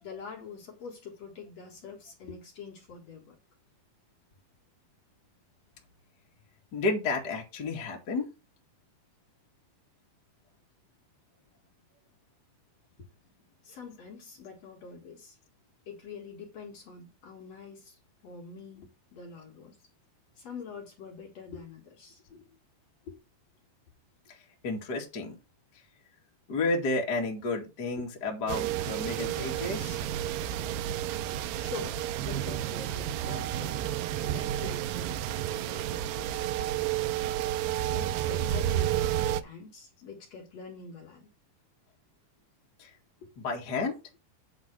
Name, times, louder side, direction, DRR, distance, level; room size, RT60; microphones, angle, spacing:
voice 1, 0.0-3.4 13.6-15.4 15.9-19.8 20.4-22.4 23.0-23.2 28.0-28.1 31.6-33.7 34.1-36.6 37.3-37.4 37.8-41.3 43.2-43.3, left 5 dB, 50° left, 2.4 m, -45 dB
voice 2, 6.7-8.3 24.3-24.4 24.6-25.4 26.5-30.0 42.8-42.9 43.4-44.0, left 3 dB, 35° left, 1.8 m, -31 dB
sound 1, 28.5-39.4, right 12 dB, 80° right, 2.1 m, -31 dB
8.8 x 4.1 x 6.1 m
omnidirectional pair, 4.4 m